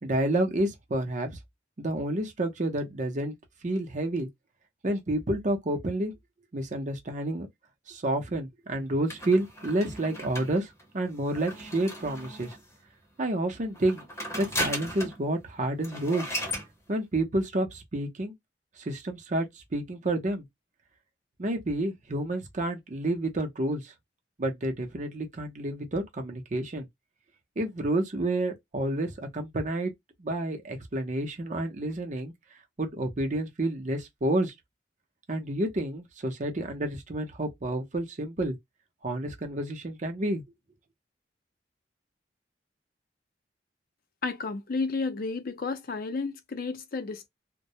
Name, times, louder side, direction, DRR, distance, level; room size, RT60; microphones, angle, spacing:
voice 1, 0.0-1.4 1.8-3.3 3.6-4.3 4.8-6.1 6.5-7.5 7.9-12.6 13.2-14.0 14.4-16.3 16.9-18.3 18.8-20.4 21.4-23.9 24.4-26.9 27.6-29.9 30.2-32.3 32.8-34.5 35.3-38.6 39.0-40.4, right 1 dB, 45° right, 0.7 m, -29 dB
sound 1, 9.1-12.7 13.7-15.2 15.5-15.6 15.8-16.7, equal, 15° left, 0.7 m, -36 dB
voice 2, 44.2-47.3, left 4 dB, 55° left, 0.5 m, -32 dB
2.2 x 2.1 x 2.7 m
head